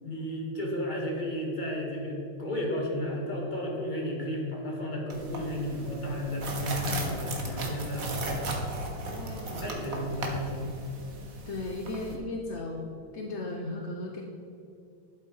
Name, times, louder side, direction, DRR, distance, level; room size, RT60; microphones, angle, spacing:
voice 1, 0.0-8.5 9.6-10.7, left 1 dB, 25° left, -1 dB, 2.1 m, -33 dB
sound 1, 5.1-12.2, right 2 dB, 45° right, 1.7 m, -36 dB
voice 2, 9.1-10.4 11.5-14.2, left 2 dB, 50° left, 2 dB, 0.8 m, -37 dB
11.5 x 8.0 x 5.5 m, 2.7 s
omnidirectional pair, 2.2 m